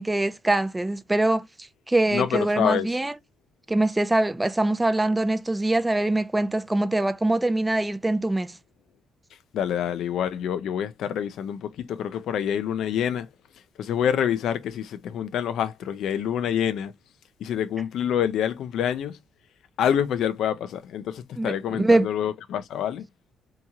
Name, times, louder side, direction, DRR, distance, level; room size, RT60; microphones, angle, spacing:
voice 1, 0.0-1.4 1.9-3.1 3.7-8.5 21.4-22.1, right 2 dB, 15° right, 0.4 m, -23 dB
voice 2, 2.1-2.9 9.5-13.3 13.8-16.9 17.4-19.2 19.8-23.1, left 9 dB, 75° left, 0.4 m, -27 dB
2.8 x 2.8 x 2.3 m
cardioid pair, 90°, 0 cm